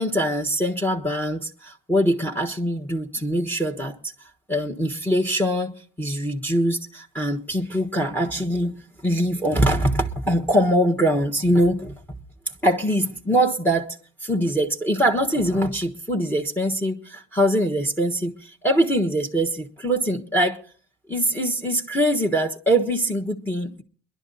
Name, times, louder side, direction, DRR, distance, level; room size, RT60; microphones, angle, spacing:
voice 1, 0.0-4.0 4.5-12.0 12.6-20.6 21.1-23.8, equal, 5° left, 1.3 m, -23 dB
21.5 x 11.5 x 4.0 m
cardioid pair, 90°, 30 cm